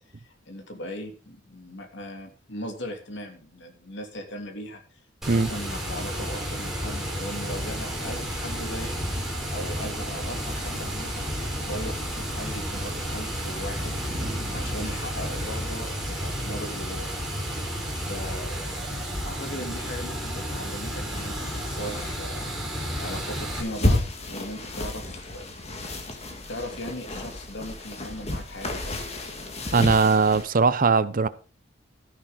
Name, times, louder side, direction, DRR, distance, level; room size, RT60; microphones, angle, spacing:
voice 1, 0.0-5.0 5.3-8.9 9.5-14.0 14.5-17.1 18.1-18.7 19.2-22.7 23.0-25.6 26.1-26.2 26.5-29.1, equal, 65° left, 2.9 m, -38 dB
Water, 5.2-23.6, equal, ahead, 4.7 m, -32 dB
sound 1, 7.6-16.7, equal, 25° right, 3.1 m, -40 dB
sound 2, 19.1-30.4, left 1 dB, 35° left, 2.1 m, -32 dB
voice 2, 29.7-31.3, right 4 dB, 45° right, 0.7 m, -20 dB
13.5 x 10.0 x 4.0 m
head